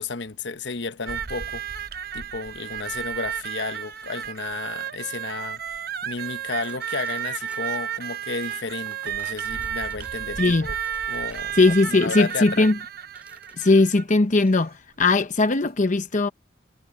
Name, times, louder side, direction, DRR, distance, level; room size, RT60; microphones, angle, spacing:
voice 1, 0.0-1.7 2.1-10.7 11.1-11.6 11.9-12.7, left 4 dB, 80° left, 1.1 m, -33 dB
sound 1, 1.1-14.1 15.0-15.1 15.5-15.7, right 9 dB, 60° right, 0.8 m, -32 dB
sound 2, 6.6-7.8 8.4-8.6 8.9-10.3 10.8-12.5 13.2-13.9 14.4-14.7, right 1 dB, 10° right, 6.0 m, -51 dB
voice 2, 11.6-12.8 13.6-16.3, left 3 dB, 45° left, 0.9 m, -19 dB
head